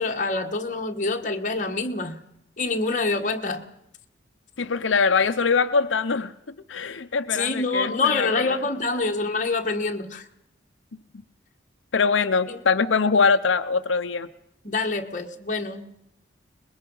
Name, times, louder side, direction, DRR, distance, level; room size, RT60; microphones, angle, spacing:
voice 1, 0.0-2.2 2.6-3.6 7.3-10.2 12.5-12.6 14.6-15.9, left 3 dB, 40° left, 3 dB, 1.5 m, -26 dB
voice 2, 4.6-6.3 6.7-8.6 11.9-14.3, left 5 dB, 90° left, 8 dB, 0.7 m, -22 dB
23.0 x 21.0 x 5.5 m, 0.79 s
head